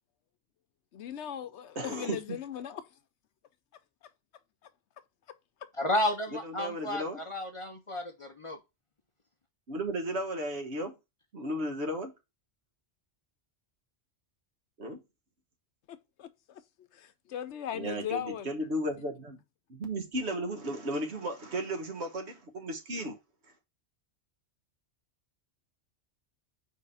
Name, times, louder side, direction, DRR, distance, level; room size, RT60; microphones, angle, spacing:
voice 1, 0.9-2.8 15.9-18.5, left 10 dB, 75° left, 1.0 m, -39 dB
voice 2, 1.7-2.2 6.4-7.2 9.7-10.9 11.3-12.1 14.8-15.0 17.7-19.4 19.7-23.2, right 1 dB, 70° right, 1.5 m, -34 dB
voice 3, 5.8-8.6, left 1 dB, 35° left, 0.6 m, -32 dB
4.6 x 3.7 x 5.5 m
omnidirectional pair, 1.2 m